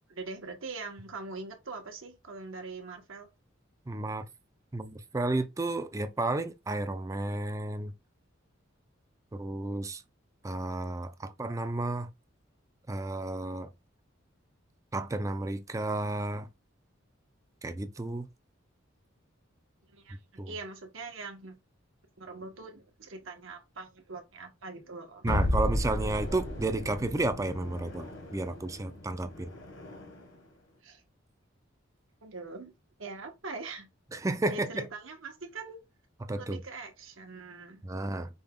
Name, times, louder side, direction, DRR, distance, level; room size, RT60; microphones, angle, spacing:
voice 1, 0.1-3.3 11.2-11.3 19.9-21.6 22.2-25.3 30.8-31.0 32.2-32.7 33.0-33.9 34.5-35.8 36.4-37.8, right 3 dB, 75° right, 1.1 m, -42 dB
voice 2, 3.9-4.2 4.7-7.9 9.3-10.0 10.4-12.1 12.9-13.7 14.9-16.5 17.6-18.3 20.4-20.5 25.2-29.5 34.1-34.8 36.3-36.6 37.8-38.3, right 2 dB, 15° right, 0.4 m, -32 dB
sound 1, 25.3-30.4, left 1 dB, 65° left, 1.4 m, -34 dB
5.3 x 2.3 x 3.5 m
head